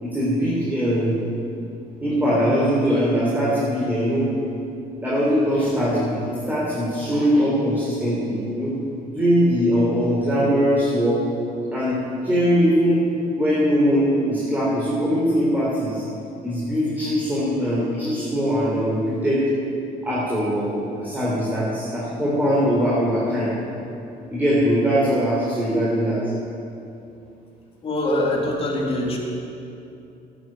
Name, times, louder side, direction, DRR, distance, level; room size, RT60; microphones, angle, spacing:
voice 1, 0.0-1.2 2.0-4.3 5.0-8.8 9.1-11.2 11.7-13.0 13.4-16.0 16.4-19.4 20.0-23.5 24.3-26.2, equal, 10° right, -7 dB, 3.9 m, -21 dB
voice 2, 27.8-29.2, left 1 dB, 35° left, -2 dB, 3.2 m, -23 dB
11.0 x 10.0 x 9.2 m, 2.7 s
cardioid pair, 110°, 17 cm